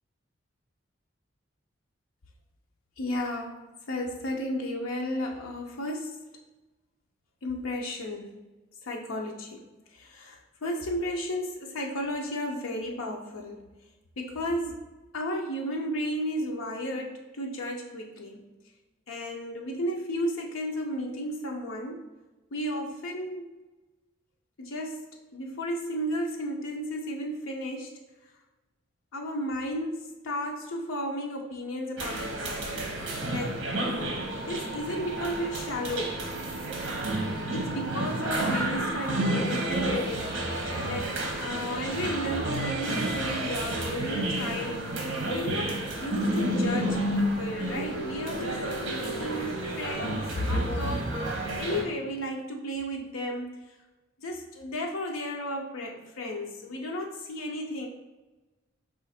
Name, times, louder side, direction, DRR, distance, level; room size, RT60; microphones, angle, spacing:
voice 1, 3.0-6.2 7.4-8.3 8.8-9.6 9.9-13.6 14.2-14.8 15.1-18.5 19.1-22.1 22.5-23.6 24.6-28.0 29.1-32.9 33.3-33.6 34.5-36.3 37.5-44.9 45.3-51.1 51.6-53.6 54.2-57.9, equal, 90° left, 1 dB, 0.6 m, -33 dB
sound 1, 32.0-51.8, right 1 dB, 60° right, 0.9 m, -31 dB
4.9 x 2.5 x 4.1 m, 1.2 s
head